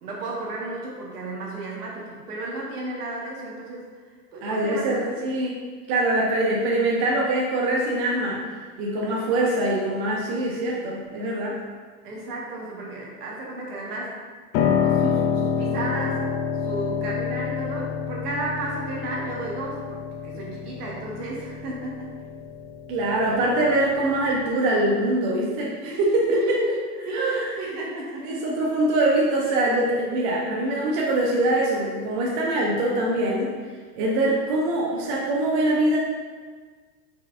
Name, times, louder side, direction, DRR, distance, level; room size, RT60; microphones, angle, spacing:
voice 1, 0.0-3.8 4.3-5.2 9.0-9.2 12.0-14.2 14.8-16.3 16.6-22.1 25.8-26.8 27.1-28.4, right 2 dB, 75° right, -3 dB, 1.5 m, -33 dB
voice 2, 4.4-5.6 5.9-8.4 8.8-11.6 22.9-26.6 27.1-27.5 28.2-33.5 33.9-36.0, right 1 dB, 45° right, -3 dB, 0.9 m, -23 dB
Piano, 14.5-24.5, left 7 dB, 35° left, 0.4 m, -28 dB
4.8 x 4.4 x 2.5 m, 1.5 s
hypercardioid pair, 105°, 47 cm